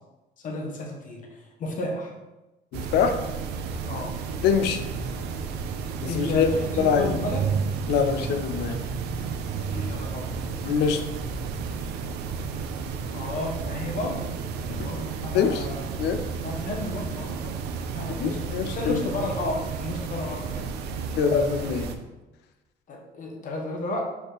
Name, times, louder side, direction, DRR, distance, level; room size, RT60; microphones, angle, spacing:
voice 1, 0.4-2.2 3.9-4.1 6.0-7.5 9.6-10.3 13.1-14.3 14.7-15.9 16.4-17.6 17.9-20.7 22.9-24.0, left 2 dB, 50° left, 1 dB, 1.0 m, -33 dB
voice 2, 2.7-3.2 4.4-4.8 6.0-6.5 6.8-7.2 7.9-8.8 10.6-11.0 14.8-14.9 15.3-15.7 16.0-16.2 18.2-19.0 21.2-21.9, left 7 dB, 80° left, 8 dB, 0.5 m, -24 dB
sound 1, 2.7-22.0, right 5 dB, 80° right, 0.5 m, -32 dB
4.8 x 2.6 x 3.8 m, 1.1 s
cardioid pair, 110°, 17 cm